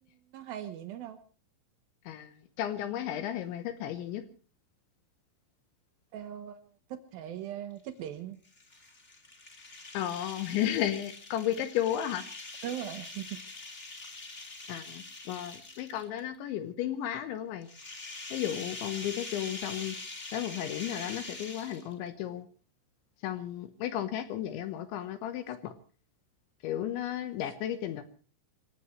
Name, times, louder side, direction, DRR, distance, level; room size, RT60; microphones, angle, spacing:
voice 1, 0.3-1.2 6.1-6.6 7.1-8.4 12.6-13.4, right 11 dB, 85° right, 9 dB, 2.1 m, -39 dB
voice 2, 2.6-4.2 9.9-12.2 14.7-17.7 18.3-20.0 20.3-22.5 23.2-25.7 26.6-28.0, left 11 dB, 75° left, 10 dB, 3.2 m, -33 dB
sound 1, 8.4-16.2 17.6-22.1, left 3 dB, 30° left, 1.1 m, -44 dB
27.5 x 16.0 x 3.2 m, 0.37 s
omnidirectional pair, 5.9 m